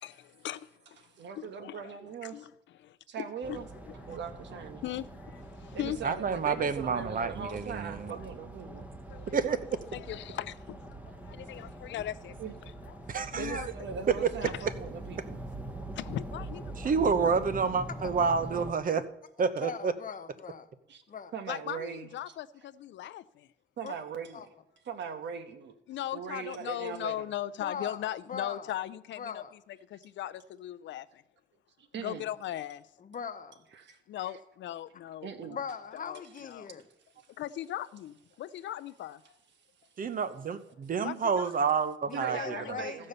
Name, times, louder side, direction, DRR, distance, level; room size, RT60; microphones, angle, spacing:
voice 1, 0.0-3.6 3.8-4.1 4.8-6.0 9.1-9.4 9.9-12.3 12.9-13.7 14.4-14.7 15.9-16.8 17.2-17.4 21.5-23.5 25.9-29.4 29.7-31.2 32.0-32.8 34.1-35.6 35.9-36.7 37.3-39.4 41.0-41.5 42.3-42.7, left 12 dB, 65° left, 0.5 m, -39 dB
voice 2, 1.2-2.4 3.1-3.7 4.0-4.8 5.7-8.9 12.4-12.5 13.4-15.4 20.9-21.0 21.3-22.1 23.8-24.4 24.9-25.7 26.1-27.3 31.8-32.2 33.7-34.0 35.2-35.6 42.1-43.1, right 6 dB, 65° right, 1.3 m, -40 dB
sound 1, 3.4-18.7, right 1 dB, 10° right, 1.3 m, -43 dB
voice 3, 6.0-8.1 9.3-9.6 13.1-13.7 14.2-14.3 16.8-19.0 19.4-19.9 40.0-42.8, right 5 dB, 45° right, 0.9 m, -29 dB
voice 4, 19.6-20.7 21.1-21.3 23.8-23.9 24.3-24.5 27.6-28.8 29.2-29.5 33.0-33.6 35.5-36.9 42.1-43.1, left 6 dB, 45° left, 1.0 m, -40 dB
15.0 x 5.5 x 6.7 m
cardioid pair, 90°, 20 cm